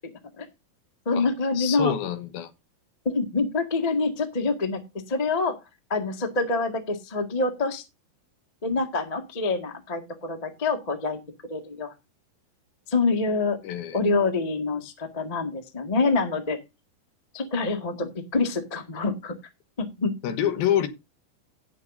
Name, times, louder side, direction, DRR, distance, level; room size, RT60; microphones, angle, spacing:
voice 1, 1.0-1.9 3.0-4.8 5.1-5.6 5.9-7.8 8.6-11.2 11.5-11.9 12.9-13.6 13.9-16.6 17.3-19.3 19.8-20.1, left 3 dB, 30° left, 0.7 m, -26 dB
voice 2, 1.6-2.5 13.6-14.0 20.2-20.9, left 10 dB, 80° left, 3.1 m, -26 dB
16.5 x 7.7 x 2.7 m
omnidirectional pair, 4.2 m